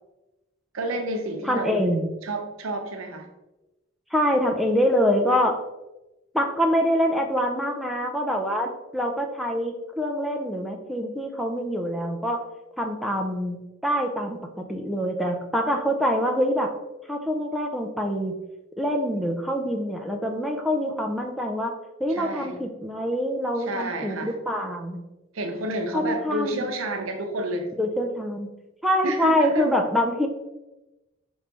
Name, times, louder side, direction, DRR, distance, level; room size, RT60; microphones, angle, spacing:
voice 1, 0.7-1.8 2.2-3.3 22.1-22.7 23.6-24.3 25.3-27.7 29.0-29.7, right 2 dB, 85° right, 5 dB, 0.7 m, -30 dB
voice 2, 1.4-2.1 4.1-5.6 6.3-12.4 12.8-16.7 17.1-18.4 18.8-25.0 25.9-26.7 27.8-28.5 28.8-30.3, equal, ahead, 1 dB, 0.4 m, -25 dB
5.0 x 3.1 x 3.3 m, 1.0 s
head